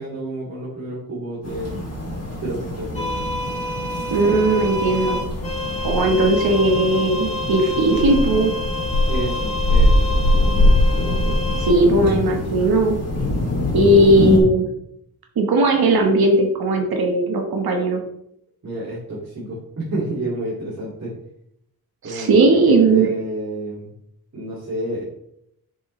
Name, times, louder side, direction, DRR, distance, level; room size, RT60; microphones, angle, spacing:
voice 1, 0.0-1.8 2.4-3.1 9.1-10.7 18.6-21.1 22.0-23.9 24.3-25.0, right 1 dB, 45° right, -7 dB, 2.5 m, -30 dB
sound 1, 1.4-14.4, left 1 dB, 40° left, 2.6 m, -22 dB
sound 2, 2.9-11.7, left 2 dB, 20° left, 2.0 m, -29 dB
voice 2, 4.1-5.2 5.8-8.5 11.6-13.0 13.7-14.7 15.4-18.0 22.0-23.1, right 2 dB, 80° right, 2 dB, 1.3 m, -17 dB
6.8 x 6.7 x 3.2 m, 0.73 s
wide cardioid pair, 115°, 36 cm